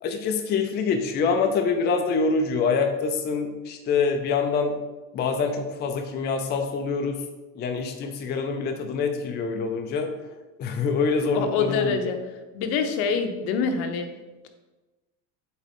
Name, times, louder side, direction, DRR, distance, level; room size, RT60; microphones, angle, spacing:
voice 1, 0.0-4.8 5.1-7.2 7.5-10.1 10.6-12.0, left 5 dB, 25° left, 5 dB, 0.5 m, -25 dB
voice 2, 11.3-12.2 12.5-14.1, left 5 dB, 70° left, 6 dB, 0.9 m, -25 dB
8.0 x 3.6 x 3.6 m, 1.1 s
cardioid pair, 145°, 39 cm